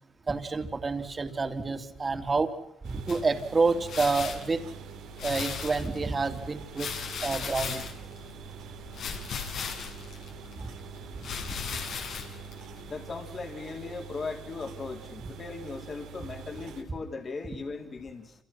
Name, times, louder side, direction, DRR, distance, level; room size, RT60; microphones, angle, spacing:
voice 1, 0.3-2.5 2.8-4.6 5.2-6.9 7.2-7.8 10.6-10.7 11.2-11.3, right 4 dB, 30° right, 7 dB, 3.2 m, -28 dB
sound 1, 2.8-16.8, right 7 dB, 85° right, 3.4 m, -45 dB
sound 2, 3.1-13.1, left 6 dB, 75° left, 6.7 m, -38 dB
voice 2, 12.9-18.3, left 4 dB, 40° left, 4 dB, 4.2 m, -38 dB
29.0 x 28.0 x 6.0 m, 0.76 s
cardioid pair, 90°, 0 cm